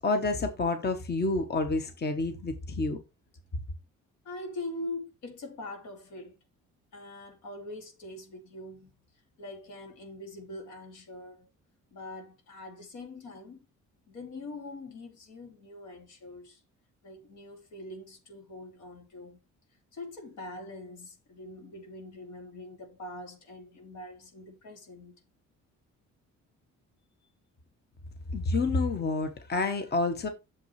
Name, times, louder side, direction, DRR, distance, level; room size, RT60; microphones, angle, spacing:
voice 1, 0.0-3.0 28.3-30.3, left 3 dB, 35° left, 1.2 m, -29 dB
voice 2, 4.2-6.4 6.9-8.9 9.4-11.5 11.9-13.7 14.1-16.6 17.0-19.4 19.9-25.2, left 2 dB, 80° left, 2.7 m, -43 dB
8.1 x 7.0 x 3.2 m
cardioid pair, 90°, 30 cm